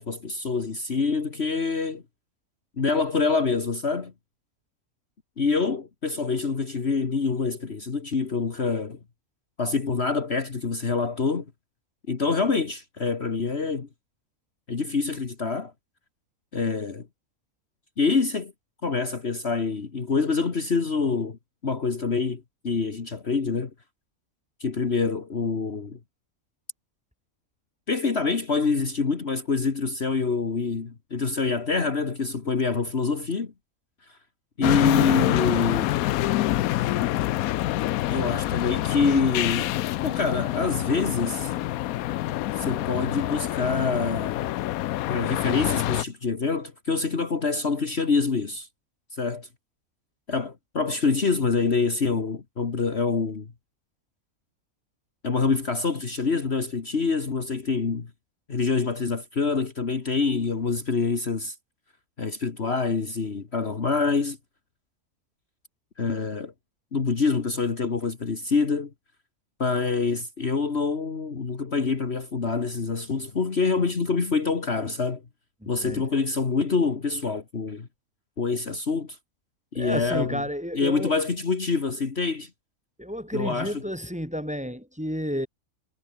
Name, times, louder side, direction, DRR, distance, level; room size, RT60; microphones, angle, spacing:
voice 1, 0.0-2.0 2.8-4.1 5.4-9.0 9.6-11.5 12.1-13.9 14.7-15.7 16.5-17.1 18.0-18.5 18.8-21.4 21.6-23.7 24.6-26.0 27.9-33.5 34.1-34.2 34.6-35.9 38.1-39.7 40.0-41.5 42.6-44.5 45.1-48.7 49.1-49.5 50.3-53.5 55.2-58.1 58.5-61.6 62.2-64.4 66.0-66.5 66.9-68.9 69.6-75.2 75.7-77.9 78.4-79.2 79.7-80.4 80.7-82.5 83.3-83.7, left 4 dB, 50° left, 2.0 m, -26 dB
sound 1, 34.6-46.0, left 15 dB, 85° left, 1.0 m, -26 dB
voice 2, 75.6-76.0 79.7-81.1 83.0-85.5, equal, 5° right, 4.3 m, -31 dB
omnidirectional pair, 1.5 m